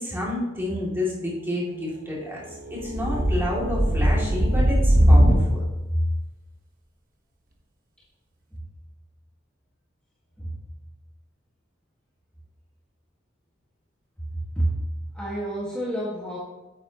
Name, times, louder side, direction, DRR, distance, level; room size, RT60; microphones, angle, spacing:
voice 1, 0.0-2.4 2.7-5.6, left 1 dB, 10° right, -5 dB, 2.5 m, -29 dB
sound 1, 2.6-5.5, equal, 45° right, 1.1 m, -19 dB
voice 2, 14.3-14.9 15.1-16.4, right 1 dB, 5° left, -8 dB, 1.6 m, -28 dB
9.0 x 8.4 x 2.9 m, 1.1 s
head